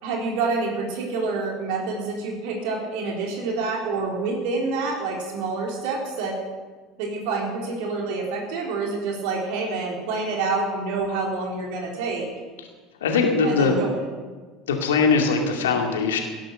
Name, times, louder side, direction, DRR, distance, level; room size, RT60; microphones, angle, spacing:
voice 1, 0.0-6.4 7.0-12.3 13.4-14.0, right 3 dB, 55° right, 0 dB, 4.0 m, -27 dB
voice 2, 13.0-13.8 14.7-16.2, left 4 dB, 70° left, 3 dB, 2.4 m, -21 dB
17.0 x 11.0 x 6.6 m, 1.4 s
figure-of-eight pair, 70°, 0 cm